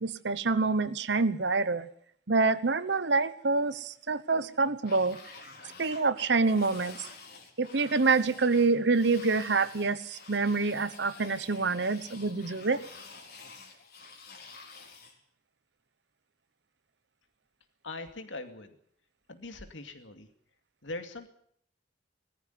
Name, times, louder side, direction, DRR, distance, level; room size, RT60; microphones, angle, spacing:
voice 1, 0.0-1.9 2.3-5.2 5.8-7.1 7.6-12.8, right 4 dB, 65° right, 14 dB, 1.0 m, -27 dB
sound 1, 4.8-15.2, left 4 dB, 55° left, 4.0 m, -49 dB
voice 2, 17.8-18.8 19.3-20.3 20.8-21.3, left 2 dB, 80° left, 7 dB, 2.5 m, -41 dB
19.5 x 14.5 x 9.5 m, 0.64 s
head